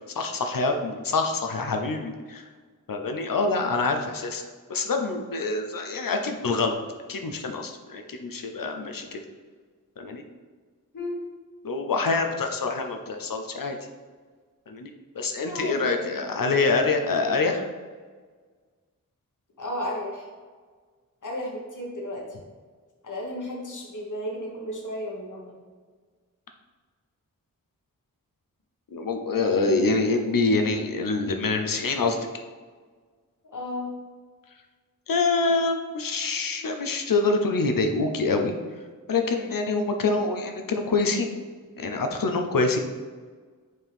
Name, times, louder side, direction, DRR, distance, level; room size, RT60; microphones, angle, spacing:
voice 1, 0.1-2.4 2.9-4.4 4.7-6.8 7.1-9.2 10.0-10.2 11.6-13.8 14.7-17.7 28.9-32.2 35.1-38.5 39.1-41.3 41.8-42.8, left 3 dB, 85° left, 5 dB, 0.8 m, -25 dB
voice 2, 15.4-16.1 19.6-20.2 21.2-22.2 23.0-25.6 33.4-34.0, left 1 dB, 65° left, -1 dB, 1.4 m, -33 dB
6.3 x 4.5 x 3.5 m, 1.5 s
wide cardioid pair, 70°, 33 cm